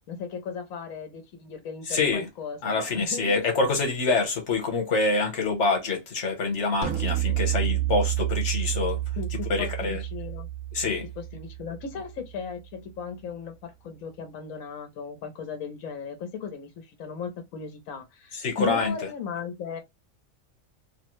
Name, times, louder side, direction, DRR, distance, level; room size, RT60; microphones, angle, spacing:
voice 1, 0.1-3.5 9.2-10.5 11.2-19.8, left 6 dB, 80° left, 1.2 m, -37 dB
voice 2, 1.9-2.3 2.6-9.0 9.5-10.0 10.7-11.0 18.3-18.9, left 3 dB, 60° left, 1.3 m, -26 dB
sound 1, 6.8-12.2, right 14 dB, 80° right, 1.0 m, -29 dB
3.1 x 2.1 x 3.0 m
omnidirectional pair, 1.4 m